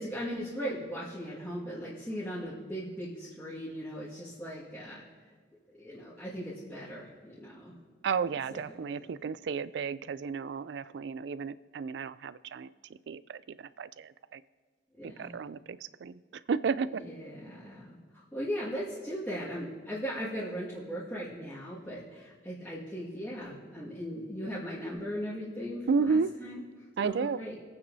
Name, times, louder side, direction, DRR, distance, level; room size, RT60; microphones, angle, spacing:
voice 1, 0.0-5.0 5.8-7.7 8.5-8.6 9.0-9.1 14.9-15.3 16.9-18.0 18.3-26.6 27.0-27.6, equal, 10° left, -11 dB, 1.9 m, -38 dB
voice 2, 8.0-12.7 13.1-14.4 15.0-16.2 16.5-17.0 25.9-26.3 27.0-27.4, right 5 dB, 65° right, 16 dB, 0.3 m, -32 dB
22.5 x 9.0 x 2.7 m, 1.5 s
head